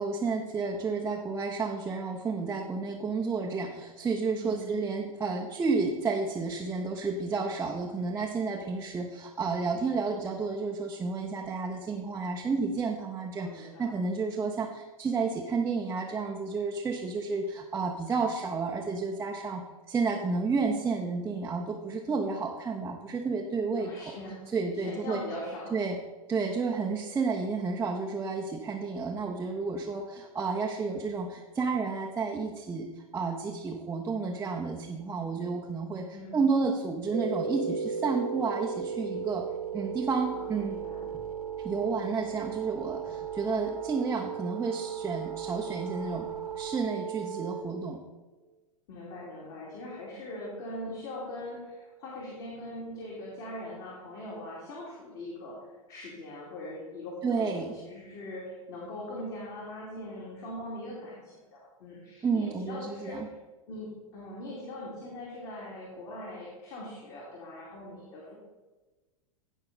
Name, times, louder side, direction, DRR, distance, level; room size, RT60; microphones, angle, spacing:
voice 1, 0.0-24.0 24.5-25.2 25.7-26.0 26.3-36.1 36.3-39.4 39.7-40.8 41.6-46.3 46.6-48.0 57.2-57.7 62.2-63.3, right 4 dB, 15° right, -1 dB, 0.9 m, -31 dB
voice 2, 4.4-4.8 13.4-14.0 23.8-24.4 24.7-25.8 36.1-36.4 40.3-41.1 48.9-55.6 55.9-63.4 63.7-68.3, left 1 dB, 45° left, -5 dB, 2.9 m, -41 dB
sound 1, 37.1-47.6, right 7 dB, 90° right, 1.0 m, -36 dB
16.0 x 5.4 x 4.1 m, 1.2 s
figure-of-eight pair, 90°, 18 cm